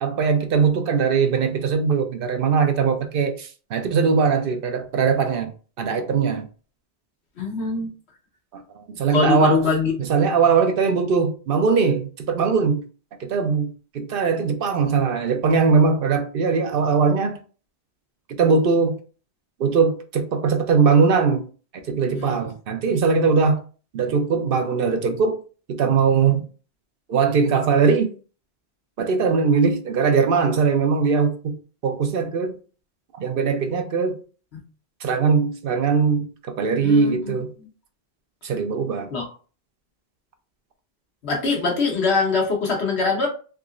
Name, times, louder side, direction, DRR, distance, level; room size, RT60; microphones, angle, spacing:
voice 1, 0.0-5.5 5.8-6.5 8.5-9.7 10.0-12.8 13.2-17.4 18.4-19.0 19.6-21.5 21.9-23.6 23.9-25.4 25.7-26.5 27.1-28.1 29.0-31.5 31.8-32.5 33.2-34.2 35.0-37.5 38.4-39.1, right 5 dB, 65° right, 0.8 m, -20 dB
voice 2, 7.4-7.9 9.1-9.9 22.0-22.5 34.5-34.6 36.8-37.7 39.1-39.3 41.2-43.3, left 4 dB, 90° left, 1.3 m, -23 dB
3.6 x 2.9 x 2.5 m
omnidirectional pair, 1.1 m